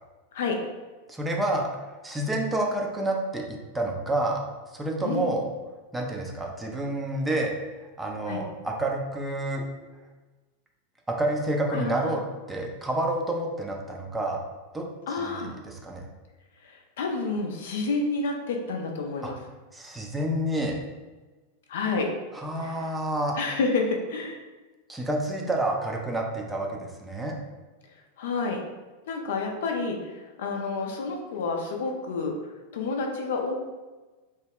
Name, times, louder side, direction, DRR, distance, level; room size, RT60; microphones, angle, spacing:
voice 1, 0.3-0.6 5.0-5.4 8.3-8.4 11.7-12.2 15.1-15.5 16.6-19.4 21.7-22.1 22.6-22.9 23.3-24.4 28.2-28.6 29.1-32.4 32.7-33.5, left 3 dB, 55° left, 2 dB, 0.4 m, -29 dB
voice 2, 1.1-4.4 4.7-5.4 5.9-7.6 8.0-9.7 11.1-12.2 12.5-14.4 14.7-14.9 15.2-16.0 19.2-19.3 19.7-20.8 22.4-23.4 24.9-27.4, right 1 dB, 10° right, 0 dB, 0.5 m, -29 dB
3.0 x 2.2 x 3.4 m, 1.2 s
figure-of-eight pair, 90°, 0 cm